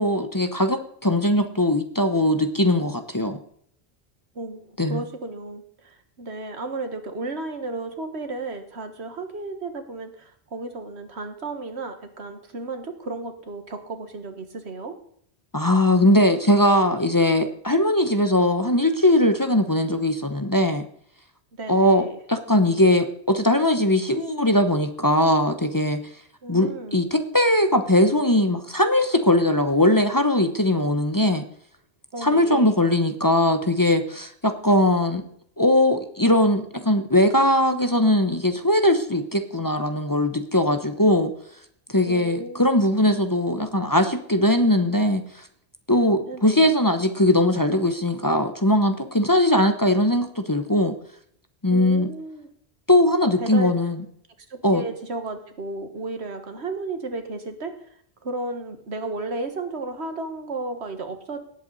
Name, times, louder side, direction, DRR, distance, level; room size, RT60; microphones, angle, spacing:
voice 1, 0.0-3.4 4.8-5.0 15.5-20.8 21.7-26.0 26.5-31.5 32.2-35.2 35.6-41.3 41.9-45.2 45.9-50.9 51.6-52.1 52.9-54.0 54.6-54.8, left 1 dB, 20° left, 7 dB, 0.9 m, -20 dB
voice 2, 4.4-15.0 21.5-22.2 26.4-27.0 32.1-32.8 42.1-42.7 46.3-46.7 51.7-52.5 53.4-53.7 54.5-57.8 58.2-61.4, right 2 dB, 85° right, 7 dB, 1.8 m, -33 dB
18.0 x 8.3 x 4.0 m, 0.64 s
omnidirectional pair, 1.1 m